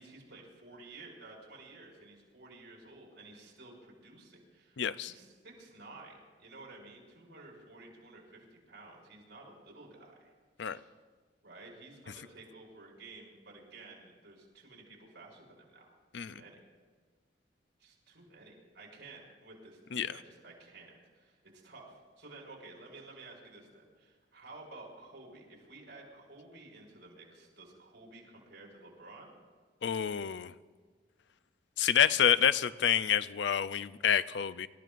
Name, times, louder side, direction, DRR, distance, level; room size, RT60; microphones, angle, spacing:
voice 1, 0.0-10.3 10.6-10.9 11.4-16.6 17.8-21.4 21.6-29.3, right 2 dB, 85° right, -3 dB, 5.7 m, -53 dB
voice 2, 4.8-5.1 10.6-10.8 16.1-16.3 19.9-20.1 29.8-30.5 31.8-34.7, left 8 dB, 80° left, 14 dB, 0.5 m, -28 dB
27.0 x 14.0 x 2.5 m, 1.5 s
head